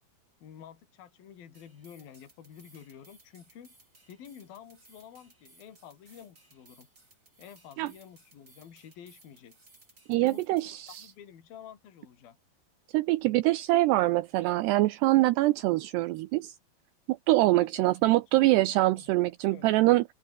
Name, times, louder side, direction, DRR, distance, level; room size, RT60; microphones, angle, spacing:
voice 1, 0.4-3.8 4.1-6.9 7.4-9.6 10.2-12.4 17.5-18.4 18.9-19.1 19.5-19.7, left 9 dB, 50° left, 4.7 m, -50 dB
sound 1, 1.5-11.2, right 2 dB, 15° right, 5.7 m, -61 dB
voice 2, 10.1-11.0 12.9-16.5 17.1-20.0, right 18 dB, 90° right, 2.3 m, -24 dB
open air
omnidirectional pair, 5.7 m